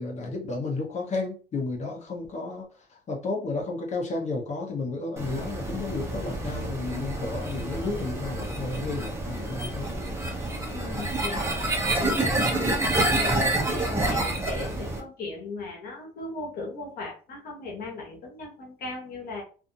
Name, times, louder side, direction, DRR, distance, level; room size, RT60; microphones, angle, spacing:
voice 1, 0.0-9.9, left 3 dB, 40° left, 0 dB, 0.9 m, -32 dB
sound 1, 5.2-15.0, right 2 dB, 15° right, 0.8 m, -28 dB
voice 2, 10.7-11.5 11.8-12.7 13.0-19.4, left 3 dB, 65° left, -1 dB, 1.1 m, -37 dB
2.6 x 2.5 x 2.6 m, 0.37 s
cardioid pair, 110°, 17 cm